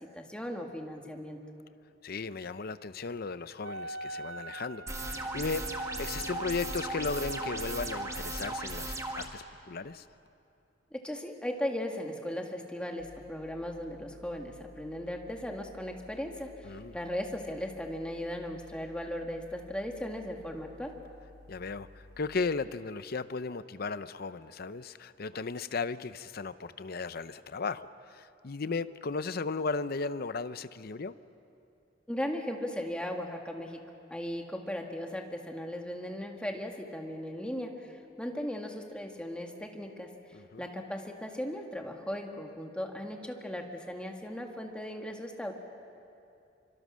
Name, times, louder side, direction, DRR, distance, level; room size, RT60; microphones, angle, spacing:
voice 1, 0.1-1.4 10.9-20.9 32.1-33.8 34.1-40.1 40.6-45.5, left 1 dB, 5° left, 2 dB, 1.8 m, -37 dB
voice 2, 2.0-10.0 16.6-17.0 21.5-31.1 40.3-40.6, left 4 dB, 55° left, 14 dB, 0.6 m, -36 dB
Wind instrument woodwind instrument, 3.6-8.7, right 2 dB, 80° right, 0.7 m, -42 dB
sound 1, 4.9-9.3, right 2 dB, 15° right, 1.7 m, -37 dB
sound 2, 13.0-22.4, left 2 dB, 60° right, 3.4 m, -55 dB
25.5 x 25.0 x 6.3 m, 2.7 s
head